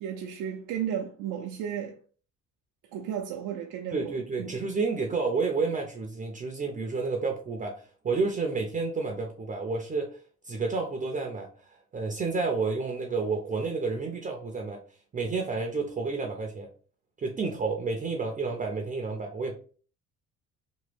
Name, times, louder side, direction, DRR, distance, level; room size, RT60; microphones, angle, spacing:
voice 1, 0.0-2.0 2.9-4.6, right 9 dB, 80° right, 0.5 m, -34 dB
voice 2, 3.9-10.2 10.4-14.8 15.1-16.7 17.2-19.6, right 4 dB, 25° right, 0.5 m, -30 dB
3.0 x 2.2 x 3.2 m
cardioid pair, 115°, 31 cm